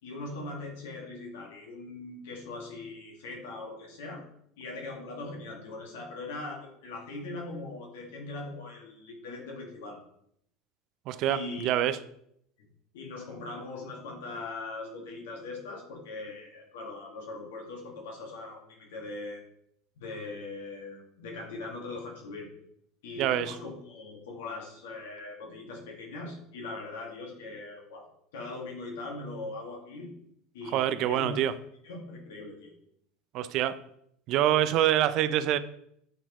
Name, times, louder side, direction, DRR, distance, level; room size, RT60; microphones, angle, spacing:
voice 1, 0.0-4.2 4.6-10.0 11.2-11.8 12.6-12.7 12.9-19.4 20.0-22.5 23.0-28.1 28.3-30.1 30.5-31.4 31.8-32.7, left 3 dB, 85° left, 1.7 m, -40 dB
voice 2, 11.1-12.0 23.2-23.6 30.7-31.5 33.3-33.8 34.3-35.6, right 12 dB, 60° right, 0.4 m, -26 dB
7.9 x 4.2 x 3.0 m
supercardioid pair, 95°, 0 cm